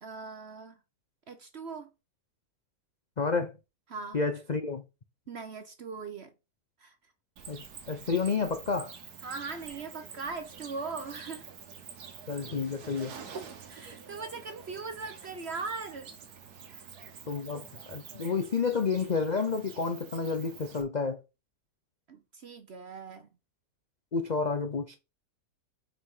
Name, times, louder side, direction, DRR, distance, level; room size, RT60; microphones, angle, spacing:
voice 1, 0.0-0.8 1.3-1.9 3.9-4.2 5.3-6.3 6.8-6.9 9.2-11.5 13.7-16.1 16.7-16.8 22.1-23.3, right 4 dB, 50° right, 0.9 m, -40 dB
voice 2, 3.2-3.5 4.1-4.8 7.5-8.9 12.3-13.2 17.3-21.2 24.1-25.0, left 4 dB, 65° left, 0.4 m, -30 dB
Cricket, 7.4-20.8, right 6 dB, 65° right, 1.7 m, -47 dB
5.8 x 5.1 x 4.8 m
omnidirectional pair, 1.8 m